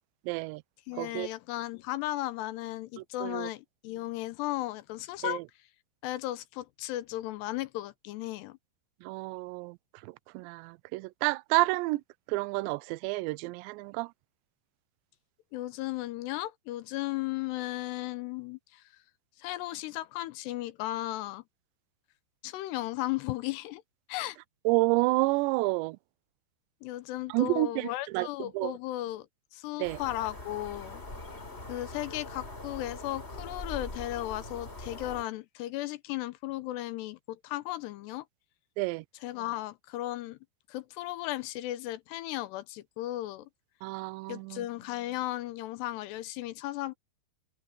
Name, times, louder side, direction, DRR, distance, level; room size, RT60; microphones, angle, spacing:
voice 1, 0.3-0.6 1.0-1.3 3.2-3.5 5.2-5.4 9.0-9.8 10.3-12.0 12.3-14.1 24.7-26.0 27.3-27.9 28.1-28.3 28.5-28.7 29.8-30.0 38.8-39.0 43.8-44.6, right 23 dB, 85° right, 2.7 m, -29 dB
voice 2, 0.9-5.4 6.0-8.6 15.5-18.8 19.4-21.4 22.4-23.8 24.1-24.4 26.8-29.3 29.5-31.0 31.7-38.3 39.2-40.4 40.7-43.5 44.3-46.9, left 16 dB, 80° left, 2.7 m, -35 dB
sound 1, 29.8-35.2, left 2 dB, 15° left, 3.8 m, -42 dB
omnidirectional pair, 5.3 m